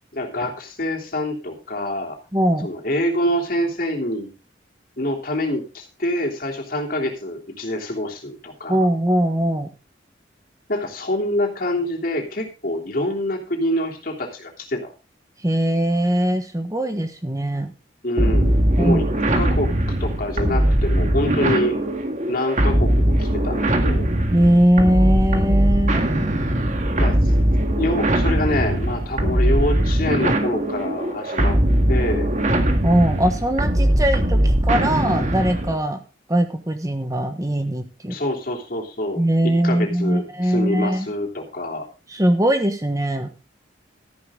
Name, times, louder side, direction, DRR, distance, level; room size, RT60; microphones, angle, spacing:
voice 1, 0.1-2.2 2.6-4.3 5.0-8.9 10.7-14.9 18.0-19.1 19.3-21.8 22.3-24.1 26.9-27.3 27.8-31.6 31.9-32.3 38.1-41.9, left 1 dB, 50° left, 1 dB, 3.2 m, -26 dB
voice 2, 2.3-2.7 8.7-9.7 15.4-17.7 18.8-19.0 24.3-26.1 32.8-36.0 36.3-38.2 39.2-41.1 42.1-43.3, equal, 20° right, 7 dB, 1.2 m, -20 dB
sound 1, 18.2-35.8, right 1 dB, 40° right, 1.8 m, -20 dB
13.5 x 10.5 x 3.7 m, 0.32 s
head